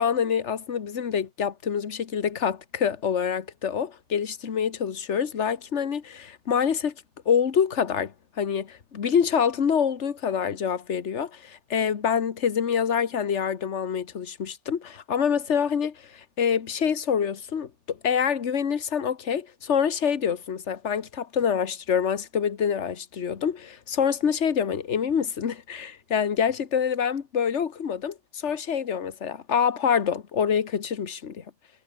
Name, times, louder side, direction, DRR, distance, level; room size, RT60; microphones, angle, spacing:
voice 1, 0.0-6.9 7.2-31.4, left 7 dB, 45° left, 1.6 m, -26 dB
omnidirectional pair, 1.8 m